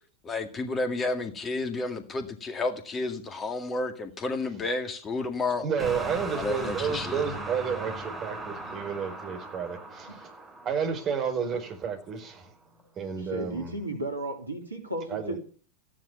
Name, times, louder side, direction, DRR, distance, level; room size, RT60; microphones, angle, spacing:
voice 1, 0.2-5.6 6.3-7.2, left 3 dB, 20° left, 2.0 m, -31 dB
voice 2, 5.6-10.3 10.6-12.5 13.0-13.8 15.1-15.4, right 6 dB, 30° right, 4.9 m, -31 dB
sound 1, 5.8-11.8, right 2 dB, 5° right, 3.5 m, -38 dB
voice 3, 13.1-15.4, right 1 dB, 80° right, 3.5 m, -34 dB
15.0 x 10.0 x 7.1 m
figure-of-eight pair, 90°, 0 cm